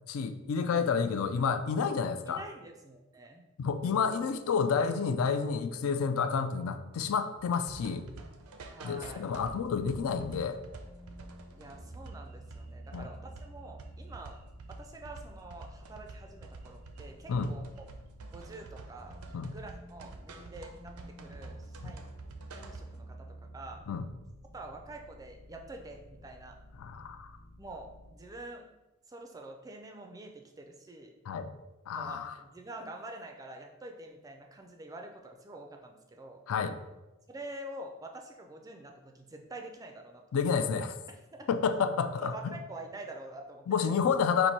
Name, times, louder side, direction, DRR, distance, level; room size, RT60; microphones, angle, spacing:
voice 1, 0.1-2.4 3.6-8.1 8.8-10.6 12.9-13.1 17.3-17.5 19.3-19.5 21.8-21.9 23.9-24.1 26.8-27.3 31.3-31.5 31.9-32.4 36.5-36.7 40.3-41.0 41.5-42.6 43.7-44.5, left 6 dB, 70° left, 9 dB, 0.3 m, -30 dB
voice 2, 2.3-3.5 8.7-9.2 11.6-14.4 14.7-17.6 18.3-19.2 19.5-22.1 22.5-23.8 24.5-26.5 27.6-28.7 29.1-31.1 32.0-36.4 37.3-40.4 41.4-41.5 42.2-43.9, right 2 dB, 15° right, 3 dB, 0.3 m, -46 dB
sound 1, 7.4-23.0, right 3 dB, 85° right, 0.5 m, -49 dB
sound 2, 9.3-18.5 18.9-28.1, right 1 dB, 25° left, 0.6 m, -51 dB
4.3 x 2.6 x 4.4 m, 1.1 s
head